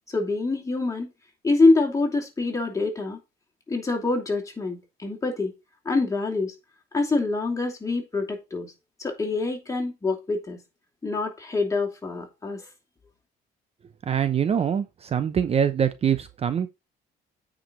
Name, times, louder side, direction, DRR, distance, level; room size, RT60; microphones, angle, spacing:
voice 1, 0.1-1.1 1.4-3.2 3.7-5.5 5.8-6.5 6.9-8.7 9.0-10.6 11.0-12.6, left 3 dB, 20° left, 2.8 m, -25 dB
voice 2, 14.1-16.7, right 8 dB, 35° right, 0.7 m, -24 dB
9.0 x 5.1 x 4.1 m
cardioid pair, 110°, 17 cm